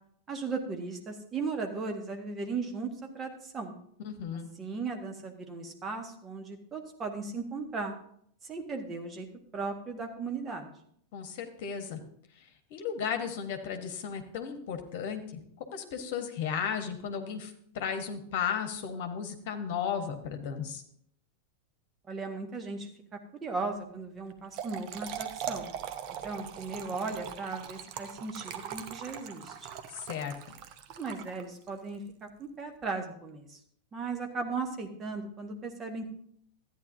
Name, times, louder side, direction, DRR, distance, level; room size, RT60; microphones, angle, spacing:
voice 1, 0.3-3.7 4.6-7.9 8.4-9.3 9.5-10.7 22.1-25.7 26.2-29.7 30.9-33.6 33.9-36.0, right 4 dB, 20° right, 3 dB, 1.5 m, -37 dB
voice 2, 4.0-4.5 11.1-12.0 12.4-15.2 15.7-20.8 29.9-30.4, left 7 dB, 50° left, 7 dB, 1.4 m, -35 dB
Trickle dribble / Fill (with liquid), 24.3-31.8, right 9 dB, 40° right, 0.9 m, -40 dB
13.5 x 9.5 x 2.7 m, 0.67 s
figure-of-eight pair, 90°, 0 cm